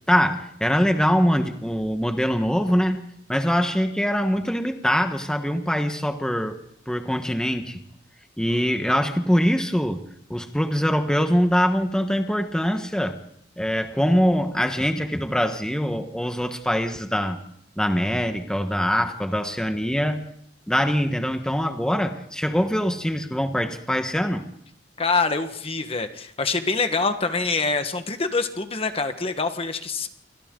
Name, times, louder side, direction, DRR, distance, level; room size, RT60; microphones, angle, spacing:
voice 1, 0.1-6.6 6.9-7.8 8.4-10.0 10.3-13.2 13.6-17.4 17.8-20.3 20.7-24.5, equal, 5° left, 6 dB, 1.3 m, -23 dB
voice 2, 25.0-30.1, left 4 dB, 35° left, 8 dB, 1.4 m, -25 dB
28.0 x 25.0 x 3.9 m, 0.73 s
head